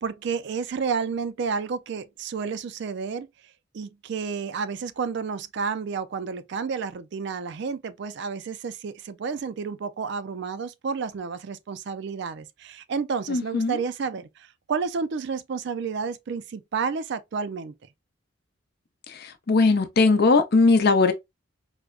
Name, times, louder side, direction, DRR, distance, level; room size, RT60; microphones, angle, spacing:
voice 1, 0.0-3.3 3.7-14.3 14.7-17.7, right 5 dB, 60° right, 0.4 m, -30 dB
voice 2, 13.3-13.8 19.1-21.1, left 3 dB, 55° left, 0.6 m, -20 dB
4.7 x 2.1 x 2.3 m
head